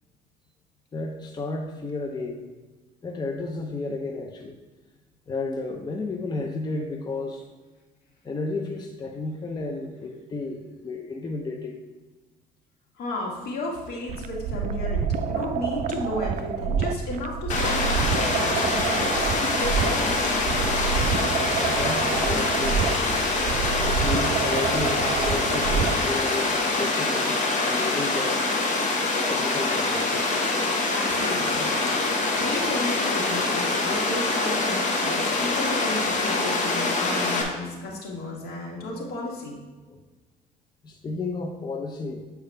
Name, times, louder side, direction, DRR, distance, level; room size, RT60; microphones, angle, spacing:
voice 1, 0.9-2.5 3.0-4.6 5.3-7.4 8.2-11.8 21.7-23.0 23.8-27.4 27.7-28.4 29.3-30.3 39.9-40.0 40.8-42.3, left 3 dB, 25° left, 2 dB, 0.6 m, -32 dB
voice 2, 13.0-20.3 30.9-31.7 32.3-39.6, left 2 dB, 70° left, -2 dB, 1.9 m, -33 dB
sound 1, 14.1-26.1, right 7 dB, 50° right, 0.4 m, -28 dB
Water, 17.5-37.4, left 3 dB, 45° left, 1.3 m, -25 dB
8.3 x 4.7 x 3.3 m, 1.2 s
cardioid pair, 110°, 17 cm